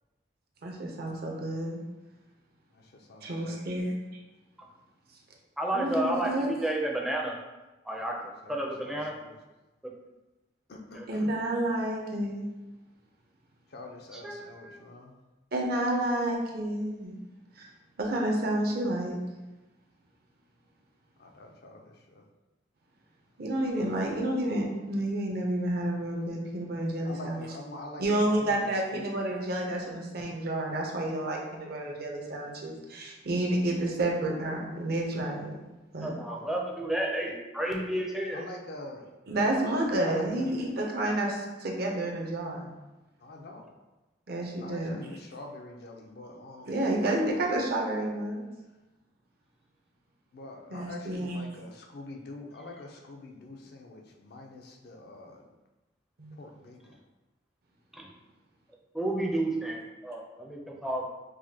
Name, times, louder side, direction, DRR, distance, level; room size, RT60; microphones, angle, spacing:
voice 1, 0.6-1.8 3.2-4.2 5.7-6.5 11.1-12.5 15.5-17.2 17.6-17.7 18.0-19.2 23.4-27.5 28.0-35.6 35.9-36.2 39.3-42.8 44.3-45.0 46.7-48.4 50.7-51.5 56.2-56.3, right 1 dB, 60° right, 0 dB, 0.7 m, -30 dB
voice 2, 2.7-3.7 8.4-9.4 10.7-11.3 13.7-15.2 21.2-22.2 23.5-24.2 27.0-29.1 31.8-32.0 36.3-36.5 38.3-39.1 40.0-40.6 43.2-43.7 44.6-46.8 50.3-55.4 56.4-57.0, left 2 dB, 60° left, 1 dB, 0.5 m, -45 dB
voice 3, 5.6-7.3 7.8-9.1 9.8-9.9 11.0-11.1 14.2-14.3 14.6-14.9 36.0-38.4 57.9-58.1 58.9-61.1, right 1 dB, ahead, -1 dB, 0.5 m, -31 dB
4.8 x 2.1 x 2.8 m, 1.1 s
head